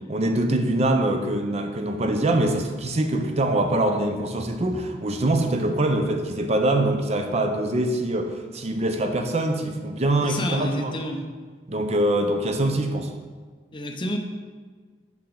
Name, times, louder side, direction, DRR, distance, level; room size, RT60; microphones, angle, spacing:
voice 1, 0.1-10.9 11.7-13.1, right 1 dB, 35° right, 5 dB, 0.6 m, -24 dB
voice 2, 10.2-11.2 13.7-14.2, left 1 dB, 25° left, 4 dB, 0.6 m, -30 dB
7.0 x 4.8 x 3.8 m, 1.5 s
head